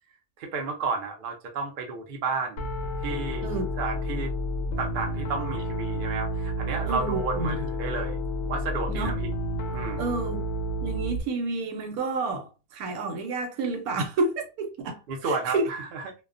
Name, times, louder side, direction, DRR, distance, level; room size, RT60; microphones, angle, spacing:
voice 1, 0.4-2.6 3.0-3.5 3.8-4.3 4.8-8.2 8.4-9.3 9.7-10.1 15.1-16.1, right 4 dB, 60° right, 0.5 m, -32 dB
Piano, 2.6-11.2, equal, 65° left, 0.7 m, -30 dB
voice 2, 6.8-7.5 8.9-9.1 10.0-10.5 10.8-15.0 15.3-15.7, right 3 dB, 80° right, 1.1 m, -30 dB
2.4 x 2.1 x 2.4 m
omnidirectional pair, 1.5 m